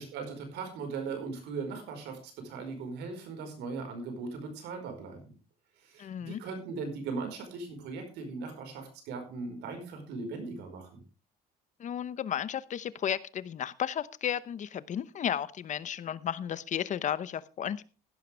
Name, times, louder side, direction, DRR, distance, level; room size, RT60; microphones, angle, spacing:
voice 1, 0.0-5.4 5.8-11.0, right 4 dB, 85° right, 6 dB, 4.9 m, -39 dB
voice 2, 6.0-6.4 11.8-17.8, left 9 dB, 45° left, 17 dB, 0.9 m, -33 dB
15.5 x 11.5 x 3.4 m, 0.34 s
cardioid pair, 110°, 17 cm